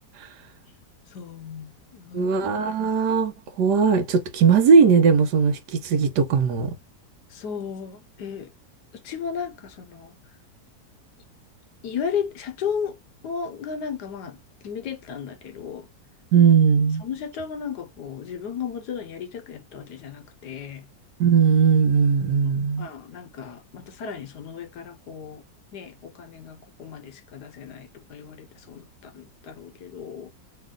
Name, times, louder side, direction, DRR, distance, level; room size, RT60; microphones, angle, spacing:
voice 1, 1.1-2.3 7.3-8.5 8.9-10.2 11.8-13.0 13.2-14.4 14.6-15.9 17.0-20.8 22.8-25.4 25.7-30.3, left 7 dB, 70° left, 1.3 m, -34 dB
voice 2, 2.1-6.7 16.3-17.0 21.2-22.9, right 6 dB, 75° right, 1.3 m, -19 dB
3.1 x 2.9 x 3.7 m
omnidirectional pair, 1.9 m